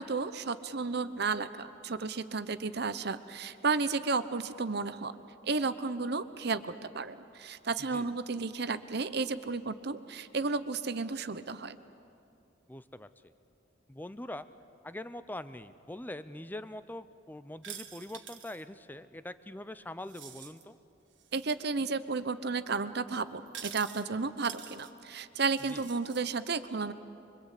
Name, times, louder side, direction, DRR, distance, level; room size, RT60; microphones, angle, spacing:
voice 1, 0.0-5.1 5.4-11.8 21.3-26.9, right 4 dB, 60° right, 12 dB, 0.9 m, -33 dB
voice 2, 12.7-13.3 13.9-14.5 14.8-20.8 25.7-25.9, left 1 dB, 10° left, 13 dB, 0.6 m, -43 dB
sound 1, 17.6-18.6 20.0-20.6 21.2-21.6 23.5-24.0 24.4-24.9 25.5-26.2, right 9 dB, 75° right, 1.4 m, -46 dB
25.0 x 24.0 x 8.3 m, 2.7 s
head